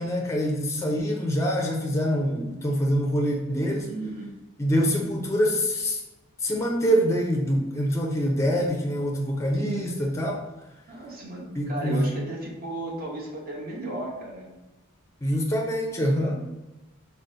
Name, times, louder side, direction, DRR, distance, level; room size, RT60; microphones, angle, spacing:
voice 1, 0.0-3.9 4.6-6.0 6.4-10.4 11.5-12.1 15.2-16.4, equal, 15° left, 1 dB, 0.4 m, -25 dB
voice 2, 3.8-4.3 9.6-9.9 10.9-14.5, right 2 dB, 45° right, -3 dB, 1.0 m, -34 dB
3.9 x 2.0 x 3.9 m, 1.0 s
head